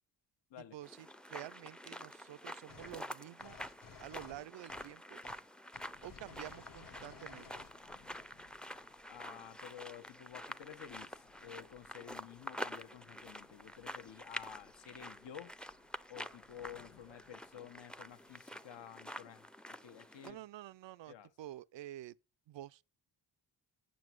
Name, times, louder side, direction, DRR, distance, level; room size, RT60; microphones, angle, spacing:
voice 1, 0.7-3.6 4.0-5.2 6.0-7.5 20.2-22.2 22.5-22.8, right 14 dB, 60° right, 0.6 m, -49 dB
sound 1, 0.8-20.3, equal, ahead, 0.6 m, -48 dB
sound 2, 2.7-3.1 3.4-5.0 5.2-5.4 5.7-7.8, left 6 dB, 40° left, 1.0 m, -56 dB
sound 3, 5.7-18.4, left 8 dB, 80° left, 1.2 m, -68 dB
voice 2, 9.1-15.5 16.1-20.4 21.1-21.3, left 10 dB, 60° left, 1.2 m, -52 dB
7.6 x 7.1 x 7.8 m
supercardioid pair, 60°, 49 cm